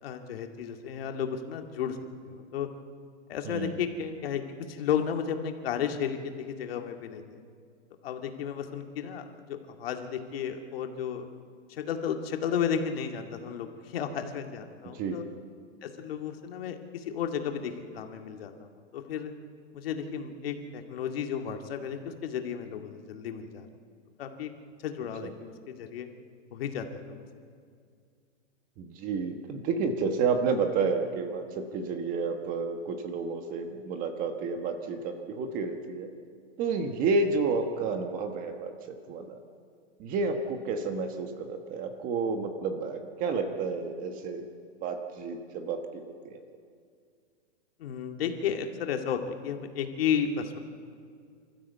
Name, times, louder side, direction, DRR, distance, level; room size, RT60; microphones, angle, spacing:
voice 1, 0.0-2.0 2.2-2.7 3.3-4.4 4.7-7.4 8.0-11.3 11.7-15.2 15.8-19.3 19.7-23.7 24.2-24.5 24.8-26.1 26.5-27.3 47.8-50.6, left 8 dB, 50° left, 5 dB, 2.2 m, -33 dB
voice 2, 3.4-3.8 14.9-15.2 25.2-25.3 28.8-36.1 36.6-39.4 40.0-44.4 44.8-46.4, right 4 dB, 20° right, 6 dB, 1.3 m, -30 dB
26.0 x 14.0 x 8.1 m, 2.2 s
hypercardioid pair, 160°, 36 cm